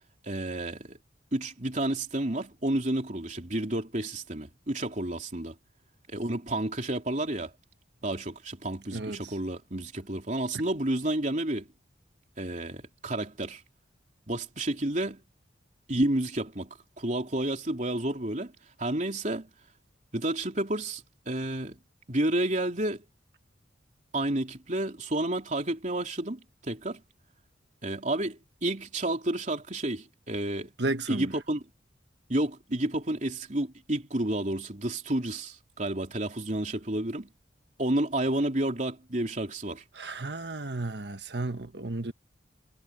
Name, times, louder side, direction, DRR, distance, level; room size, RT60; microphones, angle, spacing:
voice 1, 0.2-1.0 1.3-5.5 6.1-7.5 8.0-11.7 12.4-13.6 14.3-15.2 15.9-18.5 18.8-19.5 20.1-21.8 22.1-23.0 24.1-27.0 27.8-30.7 31.1-31.6 32.3-37.3 37.8-39.8, right 1 dB, 40° right, 3.5 m, -30 dB
voice 2, 8.9-9.3 30.8-31.3 39.9-42.1, right 2 dB, 60° right, 1.4 m, -33 dB
head